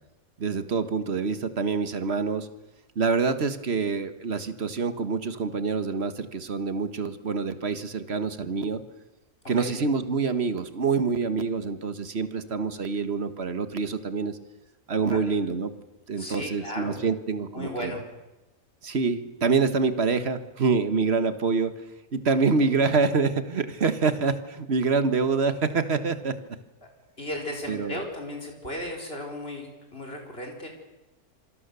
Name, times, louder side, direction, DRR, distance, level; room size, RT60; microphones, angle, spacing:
voice 1, 0.4-2.5 2.9-8.8 9.5-14.4 14.9-15.7 16.1-17.9 18.8-21.7 22.1-26.4 27.7-28.0, right 4 dB, 45° right, 11 dB, 1.6 m, -26 dB
voice 2, 16.2-17.0 17.5-18.0 22.4-22.7 27.2-30.7, left 1 dB, 40° left, 1 dB, 4.7 m, -35 dB
27.0 x 24.5 x 6.9 m, 1.0 s
omnidirectional pair, 1.6 m